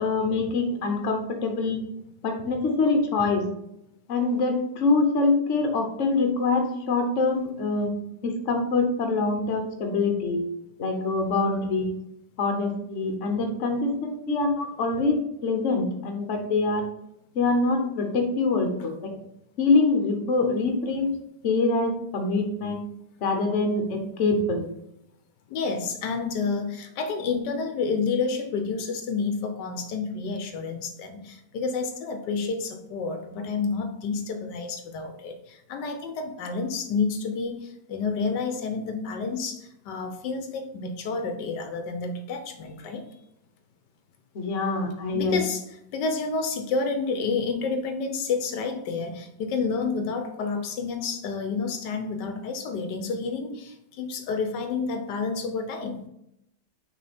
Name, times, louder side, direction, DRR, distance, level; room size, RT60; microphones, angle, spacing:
voice 1, 0.0-1.8 2.2-3.5 4.1-7.9 8.2-10.4 10.8-11.9 12.4-16.8 17.3-19.1 19.6-21.1 21.4-22.8 23.2-24.7 44.3-45.4, left 3 dB, 50° left, 4 dB, 1.2 m, -24 dB
voice 2, 25.5-43.0 45.1-45.6 45.9-56.1, left 4 dB, 80° left, 7 dB, 1.3 m, -29 dB
6.2 x 3.6 x 4.2 m, 0.79 s
omnidirectional pair, 1.8 m